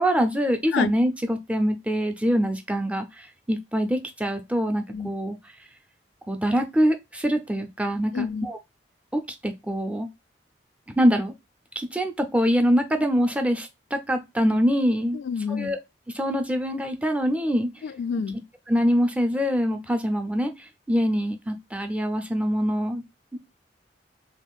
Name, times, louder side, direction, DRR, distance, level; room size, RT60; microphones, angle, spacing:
voice 1, 0.0-5.4 6.3-8.6 9.1-10.1 10.9-11.3 11.8-15.2 15.5-15.8 16.1-17.7 18.7-23.0 23.3-23.4, equal, 5° right, 0.5 m, -24 dB
voice 2, 8.1-8.5 15.1-15.7 17.8-18.4, left 6 dB, 85° left, 0.4 m, -28 dB
3.5 x 3.3 x 2.3 m
head